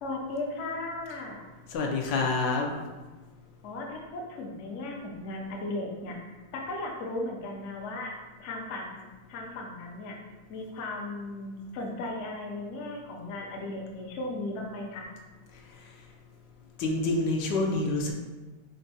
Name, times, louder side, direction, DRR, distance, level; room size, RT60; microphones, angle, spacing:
voice 1, 0.0-1.5 3.6-8.1 8.4-10.2 10.5-15.1, left 2 dB, 60° left, 0 dB, 0.8 m, -36 dB
voice 2, 1.7-2.7 16.8-18.1, left 3 dB, 85° left, 1 dB, 1.3 m, -27 dB
4.5 x 2.5 x 4.1 m, 1.2 s
omnidirectional pair, 1.9 m